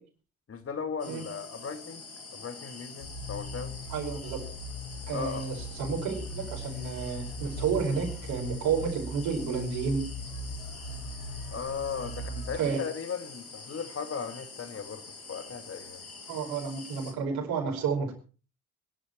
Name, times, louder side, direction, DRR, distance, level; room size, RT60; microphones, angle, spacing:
voice 1, 0.5-3.7 5.1-5.5 11.5-16.1, left 6 dB, 30° left, 2.3 m, -37 dB
sound 1, 1.0-17.1, left 4 dB, 90° left, 1.8 m, -46 dB
sound 2, 3.0-12.6, left 1 dB, 55° left, 6.0 m, -39 dB
voice 2, 3.9-4.4 5.1-10.0 12.6-12.8 16.3-18.1, right 6 dB, 60° right, 5.2 m, -31 dB
23.0 x 11.0 x 4.5 m
figure-of-eight pair, 50°, 42 cm